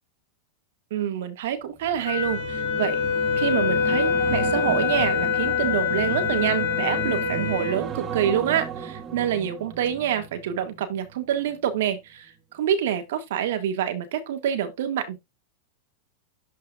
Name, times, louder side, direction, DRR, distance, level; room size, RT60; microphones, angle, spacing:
voice 1, 0.9-3.0 3.4-15.2, right 10 dB, 75° right, 1.7 m, -27 dB
sound 1, 1.8-11.2 11.5-11.8, right 7 dB, 30° right, 1.3 m, -34 dB
Wind instrument woodwind instrument, 2.1-7.8, left 7 dB, 85° left, 2.2 m, -25 dB
11.5 x 4.5 x 2.4 m
hypercardioid pair, 115°, 0 cm